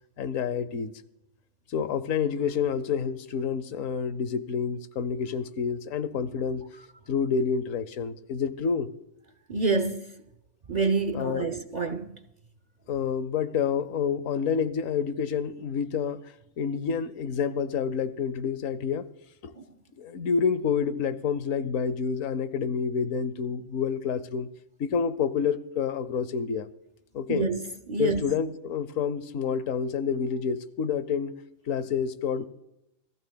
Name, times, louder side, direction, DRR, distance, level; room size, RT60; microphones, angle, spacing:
voice 1, 0.2-0.9 1.7-6.6 7.1-8.9 11.1-11.9 12.9-16.2 16.6-19.1 19.4-19.5 20.0-24.5 24.8-26.7 27.1-27.5 28.0-31.3 31.7-32.5, left 6 dB, 90° left, 1.1 m, -28 dB
voice 2, 9.5-10.1 10.7-12.2 19.5-19.6 27.3-28.2, right 4 dB, 45° right, 0.6 m, -27 dB
28.5 x 14.5 x 2.2 m
omnidirectional pair, 1.3 m